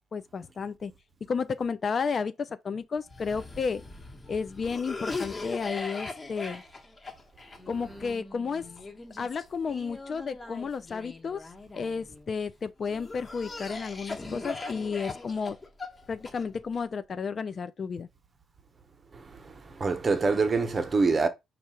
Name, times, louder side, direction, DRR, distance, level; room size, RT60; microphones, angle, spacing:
voice 1, 0.1-0.9 1.3-3.8 4.3-6.6 7.7-8.7 9.2-11.5 11.7-15.6 16.1-18.1, left 5 dB, 45° left, 0.4 m, -32 dB
Cough, 3.1-12.3 12.9-16.8, left 3 dB, 25° left, 1.3 m, -40 dB
voice 2, 19.1-21.3, right 4 dB, 35° right, 0.9 m, -26 dB
4.6 x 2.4 x 4.4 m
cardioid pair, 85°, 0 cm